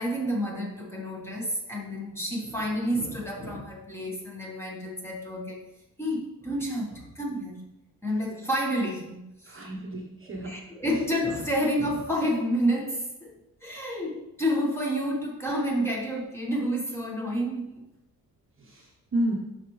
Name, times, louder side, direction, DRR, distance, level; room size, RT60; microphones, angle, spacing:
voice 1, 0.0-5.6 6.0-7.6 8.0-9.6 10.2-13.4 13.6-17.8, equal, 5° left, -3 dB, 1.6 m, -29 dB
voice 2, 9.5-10.6 18.6-19.3, right 1 dB, 30° right, -1 dB, 1.2 m, -31 dB
11.5 x 4.2 x 3.3 m, 0.88 s
cardioid pair, 125°, 40 cm